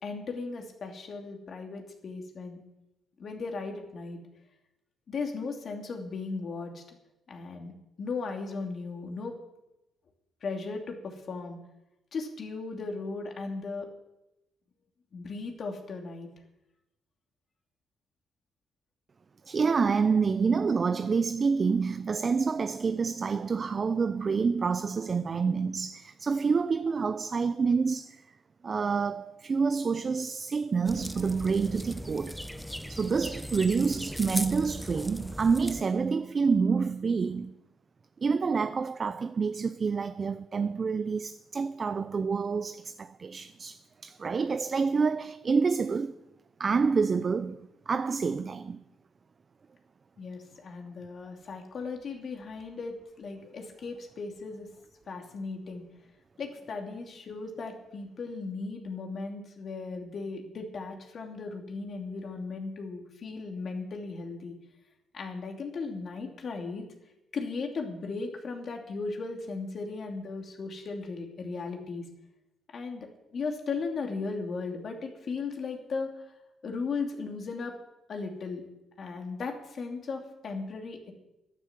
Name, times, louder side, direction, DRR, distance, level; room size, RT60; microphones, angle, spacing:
voice 1, 0.0-2.6 3.2-4.2 5.1-6.8 7.3-7.7 8.0-9.3 10.4-11.6 12.1-13.9 15.1-16.3 50.2-54.7 55.1-55.8 56.4-64.5 65.1-66.8 67.3-72.0 72.7-76.1 76.6-77.8 78.1-78.7 79.0-81.1, left 4 dB, 55° left, 2.8 m, -36 dB
voice 2, 19.5-28.2 28.6-32.4 32.9-37.5 38.2-46.1 46.6-48.8, right 5 dB, 40° right, 0.5 m, -28 dB
sound 1, 30.8-35.8, equal, ahead, 0.7 m, -38 dB
11.5 x 10.5 x 7.5 m
cardioid pair, 90°, 0 cm